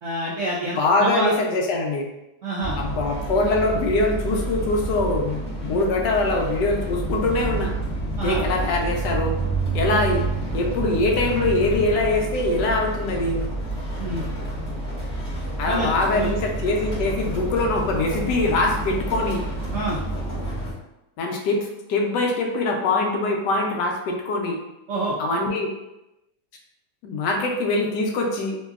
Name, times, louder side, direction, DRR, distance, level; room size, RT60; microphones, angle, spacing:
voice 1, 0.0-1.3 2.4-2.8 8.2-8.4 14.0-14.2 15.7-16.3 19.7-20.0 24.9-25.1, right 2 dB, 75° right, -6 dB, 0.7 m, -27 dB
voice 2, 0.7-2.1 2.8-7.7 8.2-9.4 9.7-10.2 10.5-13.4 15.6-19.4 21.2-24.6 25.2-25.7 27.0-28.6, left 2 dB, 80° left, 1 dB, 1.2 m, -23 dB
sound 1, 2.6-20.7, right 2 dB, 20° left, 1.3 m, -29 dB
3.0 x 2.7 x 2.3 m, 0.93 s
omnidirectional pair, 1.9 m